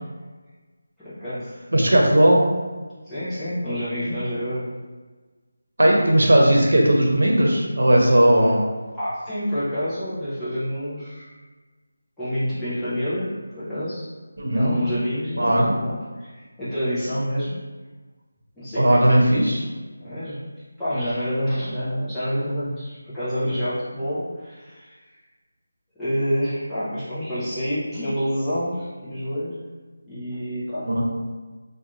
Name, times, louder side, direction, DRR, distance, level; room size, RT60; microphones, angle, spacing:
voice 1, 1.0-1.7 3.0-4.7 9.0-11.4 12.2-14.1 14.5-17.6 18.6-19.0 20.0-20.5 20.8-25.0 26.0-29.6 30.1-31.0, equal, 5° left, -15 dB, 0.4 m, -28 dB
voice 2, 1.7-2.4 5.8-8.6 14.4-14.8 15.4-15.7 18.8-19.6 30.9-31.0, right 1 dB, 90° right, -1 dB, 0.7 m, -17 dB
2.4 x 2.3 x 2.9 m, 1.3 s
figure-of-eight pair, 180°, 0 cm